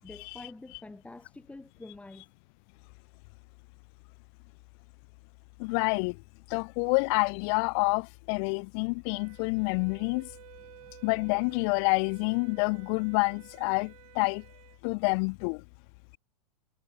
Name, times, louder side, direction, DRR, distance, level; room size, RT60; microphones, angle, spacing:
voice 1, 0.0-2.3 10.8-10.9, left 2 dB, 5° left, 4.1 m, -47 dB
voice 2, 5.6-6.2 6.5-10.3 11.0-14.4 14.8-15.6, left 36 dB, 40° left, 0.5 m, -28 dB
Wind instrument woodwind instrument, 9.1-14.8, right 17 dB, 60° right, 5.4 m, -53 dB
hypercardioid pair, 130°, 21 cm